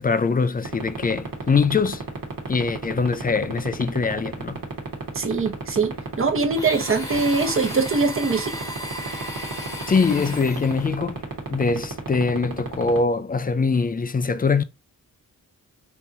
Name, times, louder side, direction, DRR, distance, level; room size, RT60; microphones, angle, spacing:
voice 1, 0.0-2.0 2.5-4.6 9.9-11.2 11.5-14.6, left 4 dB, 25° left, 0.4 m, -23 dB
sound 1, 0.6-13.0, right 6 dB, 70° right, 1.3 m, -30 dB
voice 2, 5.1-8.6, right 4 dB, 40° right, 0.9 m, -23 dB
Domestic sounds home sounds, 6.5-11.0, left 1 dB, 10° left, 1.1 m, -34 dB
3.8 x 2.9 x 2.5 m
cardioid pair, 65°, 35 cm